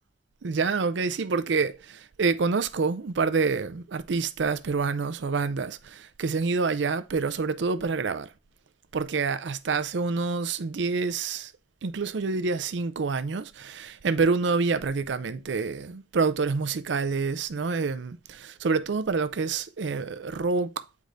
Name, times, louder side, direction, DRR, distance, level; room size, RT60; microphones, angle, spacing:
voice 1, 0.4-8.3 8.9-11.5 11.8-20.9, right 4 dB, 75° right, 0.5 m, -27 dB
8.4 x 4.7 x 2.6 m
head